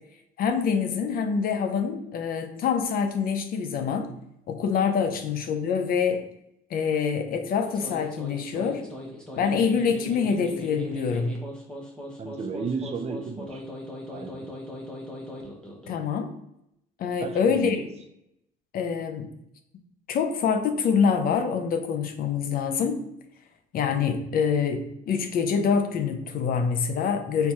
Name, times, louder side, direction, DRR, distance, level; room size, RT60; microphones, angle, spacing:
voice 1, 0.4-4.1 4.5-6.2 6.7-8.8 9.4-11.3 15.9-16.3 17.0-17.8 18.7-19.3 20.1-23.0 23.7-27.5, left 6 dB, 60° left, 6 dB, 0.6 m, -25 dB
sound 1, 7.6-16.0, equal, 5° left, 1.0 m, -39 dB
voice 2, 12.2-13.6 14.1-14.5 17.2-17.9, right 5 dB, 40° right, 5 dB, 0.6 m, -34 dB
4.5 x 3.4 x 2.9 m, 0.78 s
cardioid pair, 110°, 17 cm